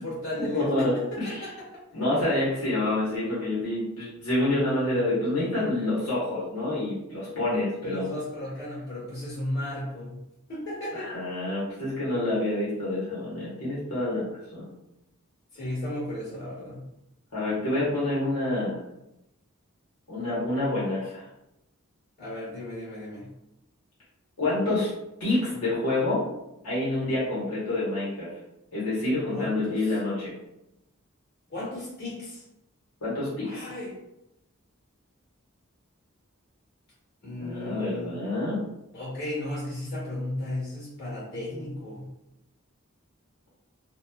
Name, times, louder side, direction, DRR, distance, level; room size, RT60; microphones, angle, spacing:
voice 1, 0.0-1.6 7.8-10.2 10.5-11.1 15.5-16.8 22.2-23.3 29.3-29.8 31.5-32.4 33.4-33.9 37.2-38.1 38.9-42.1, left 1 dB, 50° left, -7 dB, 1.5 m, -35 dB
voice 2, 0.5-1.5 1.9-8.1 10.9-14.2 14.5-14.7 17.3-18.8 20.1-21.2 24.4-24.9 25.2-26.2 26.6-28.3 28.7-30.3 33.0-33.7 37.4-38.6, left 2 dB, 80° left, -9 dB, 1.0 m, -27 dB
2.9 x 2.2 x 2.2 m, 0.87 s
head